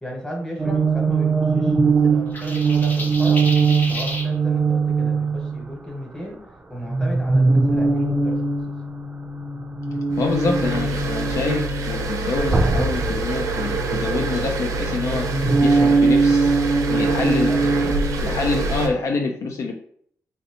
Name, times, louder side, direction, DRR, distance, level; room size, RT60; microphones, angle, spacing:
voice 1, 0.0-3.4 3.9-6.4 6.7-8.7 16.9-17.7, equal, 10° left, -1 dB, 1.2 m, -35 dB
sound 1, 0.6-5.7 6.9-12.0 12.4-14.4 14.8-18.9, right 4 dB, 30° right, 0.4 m, -21 dB
sound 2, 2.3-4.3, left 1 dB, 35° left, 0.7 m, -31 dB
sound 3, 10.1-18.9, right 2 dB, 85° right, 0.5 m, -26 dB
voice 2, 10.2-16.6 16.9-17.5 17.8-17.9 18.2-19.7, left 3 dB, 70° left, 2 dB, 0.4 m, -26 dB
3.1 x 2.7 x 2.9 m, 0.63 s
cardioid pair, 90°, 5 cm